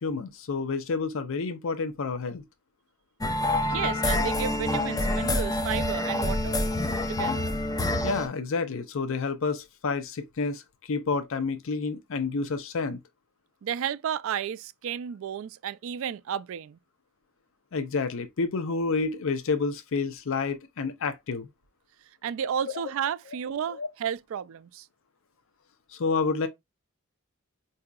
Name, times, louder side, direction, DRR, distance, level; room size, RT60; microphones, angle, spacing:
voice 1, 0.0-2.4 8.0-13.0 17.7-21.5 23.7-23.9 25.9-26.5, left 4 dB, 65° left, 0.5 m, -29 dB
sound 1, 3.2-8.3, left 1 dB, 15° left, 0.4 m, -27 dB
voice 2, 3.7-6.6 7.1-7.5 13.6-16.8 22.2-24.9, right 8 dB, 65° right, 0.3 m, -32 dB
4.8 x 2.7 x 2.2 m
head